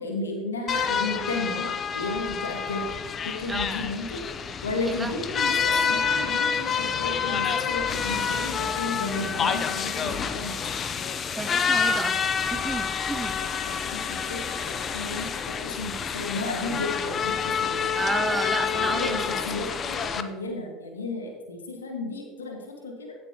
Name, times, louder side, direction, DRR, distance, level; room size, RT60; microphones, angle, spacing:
voice 1, 0.0-2.9 3.2-4.2 4.6-10.7 13.4-13.5 13.8-17.9 18.7-23.2, left 3 dB, 90° left, 1 dB, 1.6 m, -33 dB
sound 1, 0.7-20.2, left 6 dB, 40° left, 0.7 m, -28 dB
voice 2, 11.4-13.4 18.0-19.4, right 2 dB, 15° right, 10 dB, 0.8 m, -31 dB
16.0 x 7.4 x 2.9 m, 1.4 s
hypercardioid pair, 70°, 0 cm